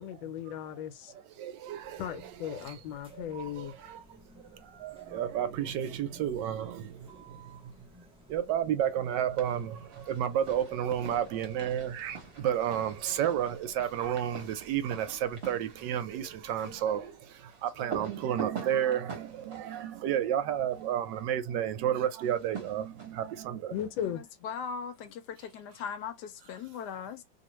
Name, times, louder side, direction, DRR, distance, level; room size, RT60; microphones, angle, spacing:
voice 1, 0.0-1.1 2.0-3.7 23.7-24.2, left 9 dB, 90° left, 1.4 m, -37 dB
voice 2, 1.1-2.8 3.1-4.2 4.4-7.7 8.3-23.8, right 10 dB, 75° right, 1.2 m, -32 dB
sound 1, 1.6-17.2, right 1 dB, 5° right, 0.7 m, -57 dB
sound 2, 9.1-9.6 9.9-20.9 22.2-23.4, right 6 dB, 45° right, 0.9 m, -45 dB
voice 3, 24.0-27.2, left 7 dB, 70° left, 1.0 m, -39 dB
2.9 x 2.4 x 2.9 m
omnidirectional pair, 2.1 m